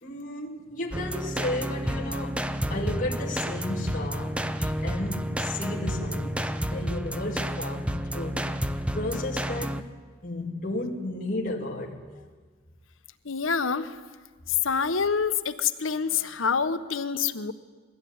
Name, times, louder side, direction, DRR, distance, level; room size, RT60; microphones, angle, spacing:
voice 1, 0.0-2.4 2.7-4.4 4.8-8.4 8.9-9.9 10.2-12.0, left 1 dB, 40° left, 2.7 m, -33 dB
sound 1, 0.9-9.8, equal, 5° right, 0.8 m, -30 dB
voice 2, 13.3-13.9 14.6-17.5, left 6 dB, 90° left, 1.3 m, -26 dB
23.0 x 16.5 x 9.6 m
head